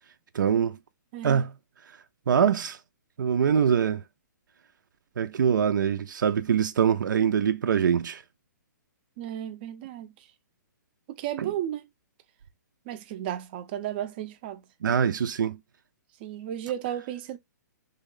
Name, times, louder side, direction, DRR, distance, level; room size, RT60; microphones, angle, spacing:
voice 1, 0.3-0.8 1.2-1.5 2.3-2.8 3.2-4.0 5.2-8.2 11.4-11.5 14.8-15.6, right 7 dB, 80° right, 0.4 m, -23 dB
voice 2, 1.1-1.5 9.2-10.1 11.1-11.9 12.9-14.6 16.2-17.4, right 11 dB, 30° right, 0.5 m, -34 dB
3.4 x 2.2 x 3.7 m
hypercardioid pair, 160°, 10 cm